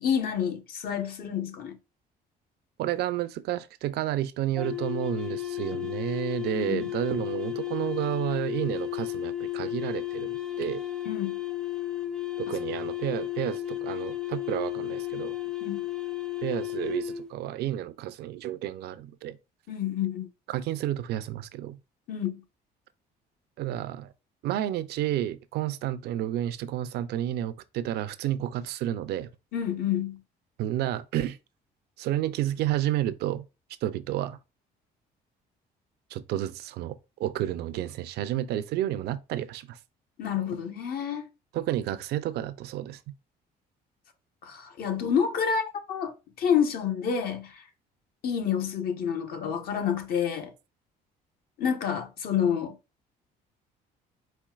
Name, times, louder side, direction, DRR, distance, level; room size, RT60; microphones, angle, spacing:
voice 1, 0.0-1.8 6.5-6.8 11.0-11.4 12.5-12.6 15.6-15.8 19.7-20.3 22.1-22.4 29.5-30.2 40.2-41.3 44.4-47.6 48.2-50.5 51.6-52.7, left 8 dB, 65° left, 1.1 m, -28 dB
voice 2, 2.8-10.8 12.4-15.4 16.4-19.4 20.5-21.8 23.6-24.1 24.4-29.3 30.6-31.4 32.0-33.5 33.8-34.4 36.1-39.8 41.5-43.0, right 12 dB, 75° right, 0.5 m, -31 dB
sound 1, 4.5-17.3, left 15 dB, 5° left, 0.5 m, -33 dB
4.4 x 4.3 x 2.4 m
cardioid pair, 110°, 17 cm